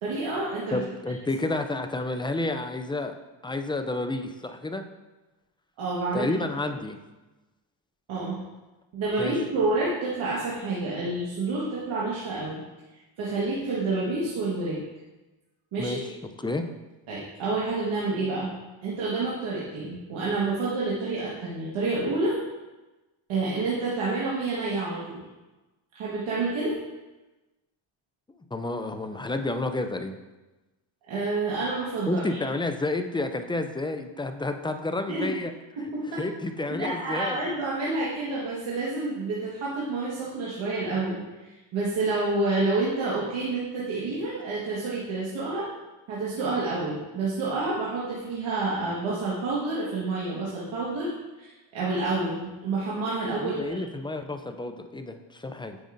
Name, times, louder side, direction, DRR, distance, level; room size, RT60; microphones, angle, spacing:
voice 1, 0.0-0.8 5.8-6.3 8.1-8.4 8.9-12.6 13.2-14.8 15.7-16.0 17.1-18.5 18.8-22.4 23.3-25.2 25.9-26.7 31.1-32.4 35.1-35.3 35.8-36.2 36.8-41.2 41.7-45.7 46.1-51.1 51.4-53.8, right 3 dB, 75° right, -7 dB, 1.6 m, -28 dB
voice 2, 0.7-3.1 3.4-4.8 6.1-7.0 9.2-9.3 15.8-16.7 28.5-30.2 32.1-35.5 36.2-37.4 53.4-55.8, left 2 dB, 10° left, 7 dB, 0.3 m, -30 dB
9.3 x 5.3 x 2.6 m, 1.1 s
cardioid pair, 95°, 47 cm